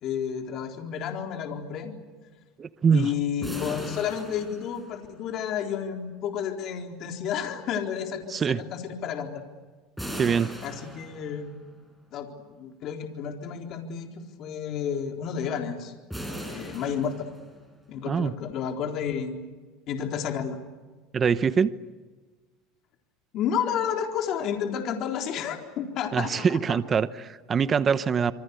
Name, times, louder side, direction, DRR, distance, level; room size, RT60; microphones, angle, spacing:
voice 1, 0.0-1.9 2.9-9.3 10.6-11.6 12.1-15.9 16.5-17.3 17.9-19.4 19.9-20.6 23.3-26.8, left 8 dB, 45° left, 3 dB, 3.9 m, -31 dB
voice 2, 2.6-3.1 8.3-8.6 10.1-10.5 18.1-18.3 21.1-21.7 26.1-28.3, right 6 dB, 25° right, 14 dB, 0.9 m, -23 dB
sound 1, 3.4-5.3 10.0-11.6 16.1-17.8, equal, ahead, 5.4 m, -38 dB
27.0 x 24.5 x 8.3 m, 1.4 s
supercardioid pair, 140°, 0 cm